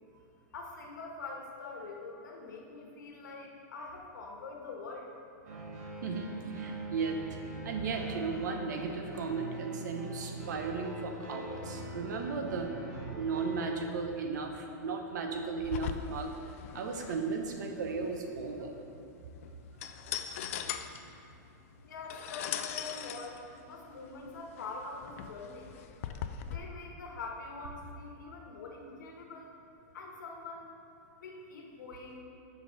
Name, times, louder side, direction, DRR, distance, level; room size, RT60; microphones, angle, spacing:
voice 1, 0.5-5.1 21.8-25.7 26.4-29.5 29.9-30.7 31.2-32.2, left 3 dB, 90° left, 0 dB, 1.4 m, -44 dB
sound 1, 5.5-13.7, right 1 dB, 60° right, 1.5 m, -43 dB
voice 2, 5.6-7.4 7.6-18.7 20.5-20.9, right 4 dB, 75° right, 4 dB, 0.9 m, -36 dB
sound 2, 15.6-26.6, left 9 dB, 45° left, 0.4 m, -41 dB
6.5 x 5.2 x 5.3 m, 2.7 s
supercardioid pair, 170°, 10 cm